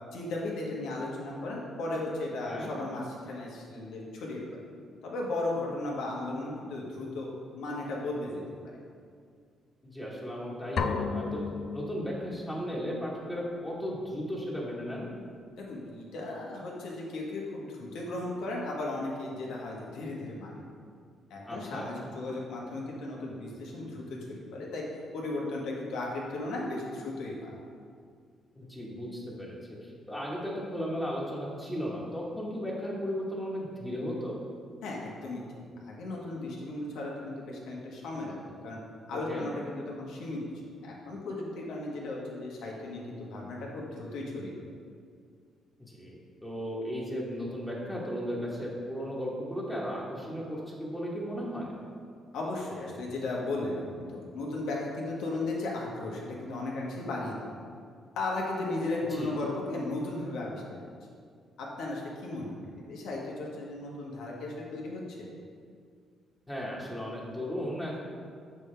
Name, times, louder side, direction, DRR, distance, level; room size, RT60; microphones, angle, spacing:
voice 1, 0.1-4.6 5.0-7.3 7.5-8.4 15.6-20.6 21.3-24.8 25.1-27.5 34.8-35.4 35.9-38.4 38.6-38.8 39.1-40.4 40.8-44.5 52.3-53.8 54.1-57.3 58.2-60.6 61.6-62.6 62.9-65.3, left 2 dB, 85° left, -3 dB, 1.4 m, -35 dB
voice 2, 9.8-11.4 11.7-15.1 21.4-21.9 28.5-34.4 39.1-39.5 45.8-51.7 59.1-59.3 66.5-68.0, equal, 10° left, -5 dB, 1.4 m, -35 dB
sound 1, 10.8-12.6, left 5 dB, 60° left, 0.4 m, -33 dB
6.9 x 6.2 x 3.4 m, 2.2 s
cardioid pair, 90°, 0 cm